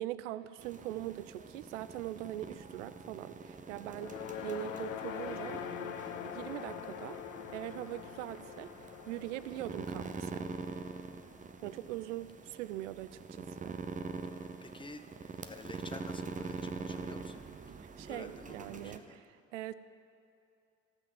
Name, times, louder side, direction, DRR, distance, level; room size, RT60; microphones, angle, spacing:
voice 1, 0.0-5.6 6.2-7.2 7.5-10.5 11.6-13.8 18.0-19.7, right 14 dB, 75° right, 15 dB, 0.5 m, -42 dB
sound 1, 0.6-19.0, right 4 dB, 20° right, 0.8 m, -45 dB
sound 2, 3.9-12.3, left 9 dB, 85° left, 0.5 m, -44 dB
voice 2, 14.3-17.4 18.1-19.2, left 3 dB, 15° left, 8 dB, 0.9 m, -50 dB
15.5 x 6.1 x 7.3 m, 2.6 s
figure-of-eight pair, 55°, 37 cm